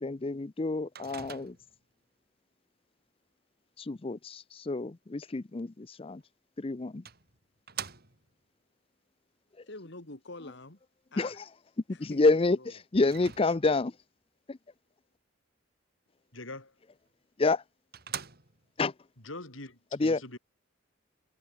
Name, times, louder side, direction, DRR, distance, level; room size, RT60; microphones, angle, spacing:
voice 1, 0.0-1.6 3.8-6.2 6.6-7.0 11.2-11.4 11.9-13.9 14.5-14.6 17.4-17.6 18.8-18.9 20.0-20.2, left 3 dB, 30° left, 0.5 m, -28 dB
Microwave oven, 1.0-1.9 6.2-6.3 7.1-8.4 13.0-13.9 17.1-17.2 17.6-17.7 17.9-18.8, right 8 dB, 50° right, 4.9 m, -43 dB
voice 2, 9.6-10.8 11.1-11.5 11.9-12.7, left 2 dB, 60° left, 2.6 m, -46 dB
voice 3, 16.3-16.7 19.2-20.4, left 2 dB, 80° left, 6.5 m, -43 dB
head